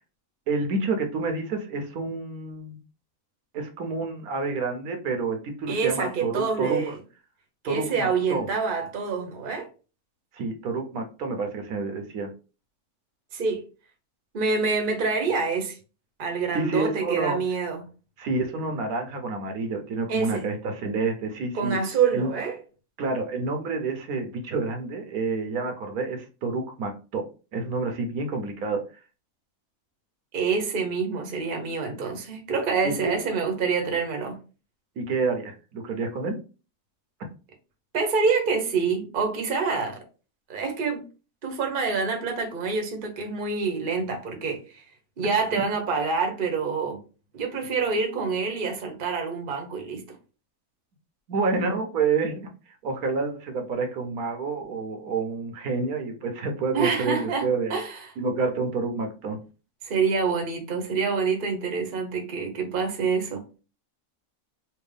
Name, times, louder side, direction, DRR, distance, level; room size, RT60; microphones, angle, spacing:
voice 1, 0.5-2.8 3.5-6.9 7.6-8.5 10.3-12.3 16.5-17.4 18.2-21.8 22.1-22.3 23.0-27.3 27.5-28.8 32.8-33.2 35.0-36.4 51.3-52.5 52.8-57.8 58.2-59.4, right 3 dB, 80° right, 1.3 m, -28 dB
voice 2, 5.7-7.0 7.6-9.7 13.3-13.6 14.3-15.8 16.2-17.8 20.1-20.5 21.5-22.6 30.3-34.4 37.9-40.0 40.5-41.0 41.4-44.8 45.2-47.0 47.3-50.0 56.7-58.1 59.8-63.4, right 5 dB, 40° right, 1.0 m, -26 dB
3.4 x 3.0 x 3.3 m
omnidirectional pair, 1.5 m